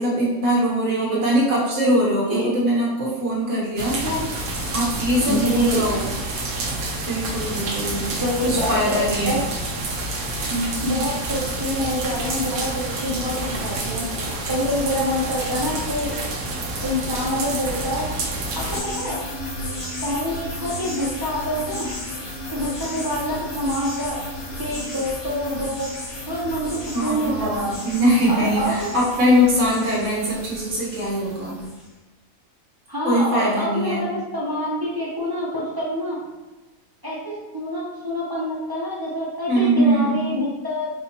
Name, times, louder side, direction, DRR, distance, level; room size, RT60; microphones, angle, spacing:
voice 1, 0.0-4.3 4.7-6.0 7.1-8.1 8.4-9.4 15.4-15.5 26.9-31.6 33.0-34.1 39.5-40.3, equal, 50° right, -7 dB, 1.5 m, -21 dB
voice 2, 0.9-1.2 2.3-2.5 5.3-5.9 8.1-9.4 10.4-16.1 16.8-19.2 20.0-21.9 22.5-24.2 24.6-25.9 26.3-27.8 28.3-28.7 32.9-36.2 37.0-40.9, equal, 35° right, -6 dB, 0.3 m, -26 dB
sound 1, 3.8-18.8, right 2 dB, 80° right, 1.1 m, -28 dB
sound 2, 18.6-31.9, left 1 dB, 40° left, 0.4 m, -33 dB
3.9 x 2.7 x 2.8 m, 1.1 s
omnidirectional pair, 1.5 m